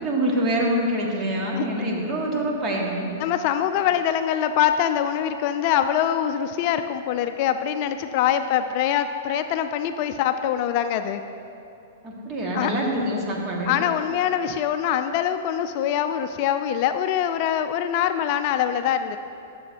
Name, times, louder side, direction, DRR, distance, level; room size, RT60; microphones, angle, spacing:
voice 1, 0.0-3.1 12.0-13.8, right 1 dB, 30° right, -2 dB, 1.9 m, -25 dB
voice 2, 3.2-11.2 12.5-12.7 13.7-19.2, left 10 dB, 50° left, 9 dB, 0.4 m, -24 dB
13.0 x 7.0 x 2.9 m, 2.7 s
hypercardioid pair, 115°, 0 cm